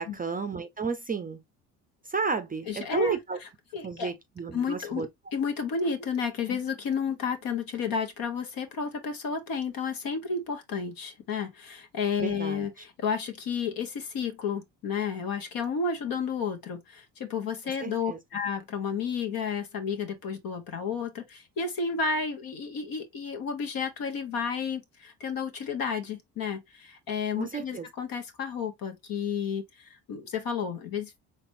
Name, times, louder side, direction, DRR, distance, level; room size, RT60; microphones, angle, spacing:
voice 1, 0.0-1.4 2.0-3.4 3.8-5.1 12.2-12.7 17.8-18.2 27.4-27.9, right 5 dB, 20° right, 0.5 m, -32 dB
voice 2, 2.7-3.2 3.7-4.1 4.5-5.0 5.3-31.2, left 6 dB, 60° left, 1.2 m, -31 dB
4.1 x 3.4 x 2.6 m
hypercardioid pair, 65°, 40 cm